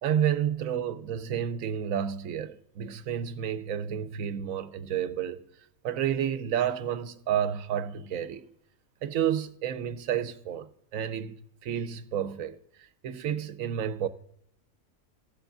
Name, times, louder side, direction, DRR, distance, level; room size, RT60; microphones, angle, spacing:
voice 1, 0.0-5.4 5.8-8.5 9.0-11.4 11.6-14.1, right 9 dB, 75° right, 1.1 m, -30 dB
16.5 x 7.1 x 2.5 m
omnidirectional pair, 1.5 m